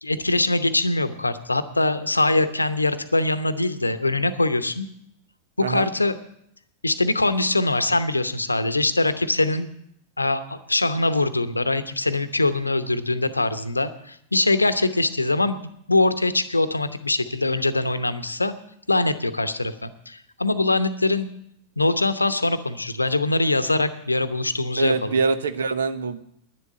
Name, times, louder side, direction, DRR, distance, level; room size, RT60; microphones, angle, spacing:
voice 1, 0.0-4.9 5.7-6.2 6.8-9.7 10.2-15.6 15.9-18.5 18.9-21.3 21.8-25.1, left 2 dB, 80° left, 12 dB, 0.8 m, -23 dB
voice 2, 24.8-26.2, right 4 dB, 65° right, 11 dB, 0.9 m, -24 dB
11.0 x 10.5 x 8.1 m, 0.73 s
figure-of-eight pair, 90°, 0 cm